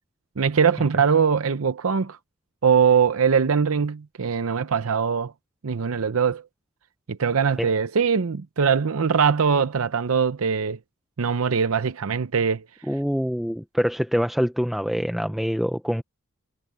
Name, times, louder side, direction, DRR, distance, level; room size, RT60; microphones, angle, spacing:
voice 1, 0.4-2.2 2.6-5.3 5.6-6.4 7.1-10.8 11.2-12.6, right 6 dB, 90° right, 0.6 m, -22 dB
voice 2, 12.9-16.0, equal, ahead, 0.6 m, -25 dB
head